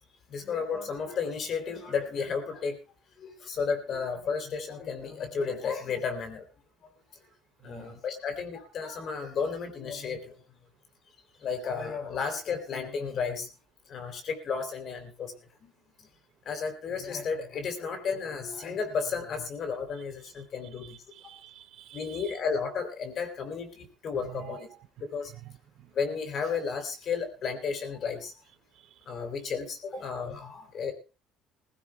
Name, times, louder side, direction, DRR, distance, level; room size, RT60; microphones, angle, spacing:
voice 1, 0.3-2.8 3.2-6.4 7.6-10.3 11.4-13.5 13.9-15.3 15.6-15.7 16.4-21.0 21.9-24.7 25.1-25.3 25.9-28.3 29.1-30.9, left 5 dB, 55° left, 3.3 m, -33 dB
voice 2, 7.6-8.0 20.2-20.4 20.7-22.4 24.2-24.8 25.2-25.5 25.8-25.9 28.7-29.1 29.9-30.0, right 13 dB, 65° right, 0.8 m, -48 dB
20.0 x 16.0 x 2.3 m
supercardioid pair, 80°, 0 cm